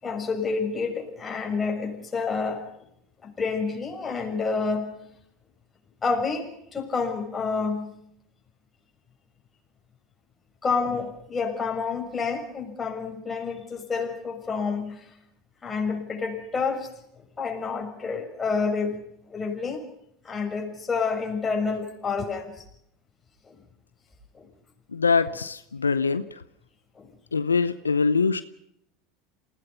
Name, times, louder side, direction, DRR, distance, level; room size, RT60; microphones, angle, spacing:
voice 1, 0.0-2.8 3.2-5.0 6.0-7.9 10.6-15.1 15.6-16.9 17.4-19.0 19.3-19.8 20.2-22.6 23.5-23.6 24.3-24.5 27.0-27.1, left 4 dB, 25° left, 3 dB, 6.6 m, -29 dB
voice 2, 24.9-26.4 27.3-28.4, left 5 dB, 90° left, 13 dB, 0.7 m, -23 dB
28.0 x 17.5 x 5.7 m, 0.73 s
hypercardioid pair, 80°, 0 cm